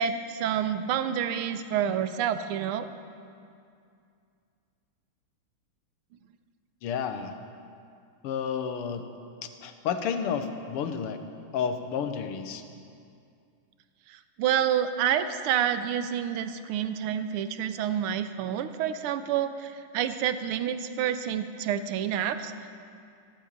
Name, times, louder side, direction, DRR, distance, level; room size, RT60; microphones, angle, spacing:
voice 1, 0.0-2.9 14.1-22.5, right 9 dB, 80° right, 10 dB, 1.6 m, -28 dB
voice 2, 6.8-7.3 8.2-9.0 9.4-11.2 11.5-12.6, left 7 dB, 85° left, 8 dB, 1.8 m, -31 dB
15.0 x 8.2 x 8.7 m, 2.4 s
omnidirectional pair, 2.4 m